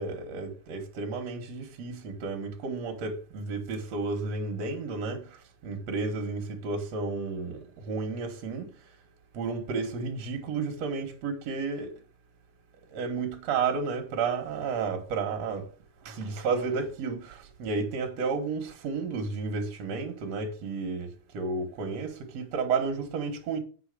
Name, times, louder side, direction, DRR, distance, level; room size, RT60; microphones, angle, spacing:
voice 1, 0.0-5.2 5.6-8.7 9.3-11.9 12.9-15.7 16.1-23.6, right 4 dB, 50° right, 2.2 m, -32 dB
8.1 x 5.8 x 6.8 m
omnidirectional pair, 4.8 m